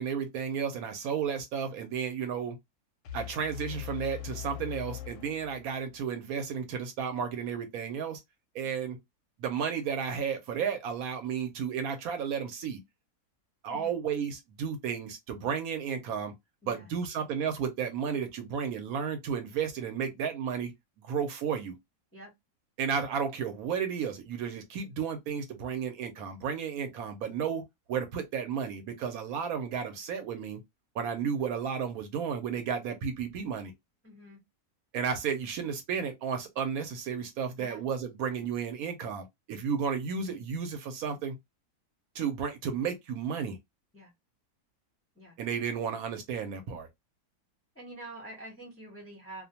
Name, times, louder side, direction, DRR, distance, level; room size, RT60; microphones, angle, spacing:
voice 1, 0.0-2.6 3.1-8.2 8.5-9.0 9.4-12.8 13.6-16.3 16.7-20.7 21.0-21.7 22.8-27.6 27.9-30.6 30.9-33.7 34.9-41.3 42.1-43.6 45.4-46.9, right 7 dB, 70° right, 1.0 m, -33 dB
sound 1, 3.0-6.1, left 11 dB, 70° left, 0.8 m, -41 dB
voice 2, 34.0-34.4 37.6-37.8 43.9-44.1 45.1-45.3 47.7-49.5, right 1 dB, 15° left, 0.6 m, -46 dB
2.5 x 2.1 x 2.7 m
omnidirectional pair, 1.7 m